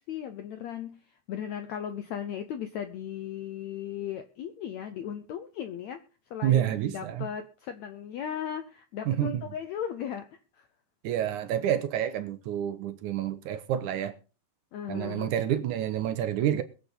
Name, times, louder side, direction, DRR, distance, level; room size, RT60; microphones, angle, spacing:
voice 1, 0.1-1.0 1.3-6.0 6.3-10.7 14.7-15.3, left 9 dB, 90° left, 1.5 m, -37 dB
voice 2, 6.4-7.3 9.1-9.4 11.0-14.1 14.9-16.6, right 11 dB, 70° right, 2.0 m, -28 dB
22.0 x 8.1 x 4.0 m
omnidirectional pair, 4.4 m